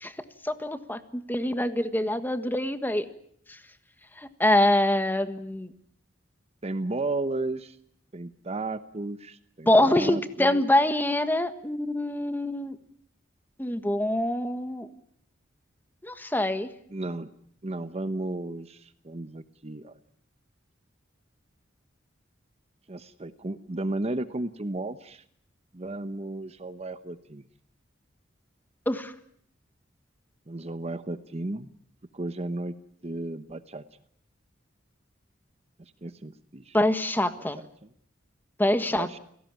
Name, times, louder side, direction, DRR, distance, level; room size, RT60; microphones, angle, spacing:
voice 1, 0.4-3.1 3.5-3.6 4.2-5.7 9.6-12.8 13.6-14.9 16.0-16.7 28.8-29.1 36.7-37.6 38.6-39.2, left 1 dB, 10° left, 10 dB, 1.5 m, -25 dB
voice 2, 6.6-7.8 8.1-10.6 16.9-17.3 17.6-19.9 22.9-25.2 25.7-27.4 30.5-31.7 32.1-32.7 33.0-33.8 35.8-36.8 37.6-37.9 38.9-39.2, right 2 dB, 35° right, 12 dB, 1.0 m, -34 dB
29.5 x 17.5 x 9.1 m, 0.67 s
head